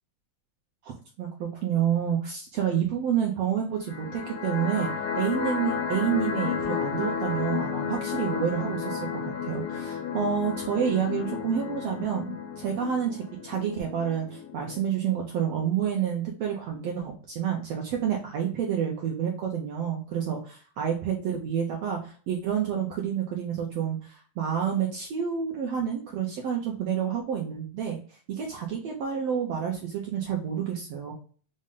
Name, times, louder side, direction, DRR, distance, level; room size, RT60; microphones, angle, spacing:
voice 1, 1.2-4.9 5.2-20.4 20.8-31.1, right 8 dB, 80° right, 0 dB, 1.5 m, -29 dB
sound 1, 3.8-14.8, left 7 dB, 90° left, 1.3 m, -32 dB
5.2 x 2.1 x 3.6 m, 0.42 s
omnidirectional pair, 3.6 m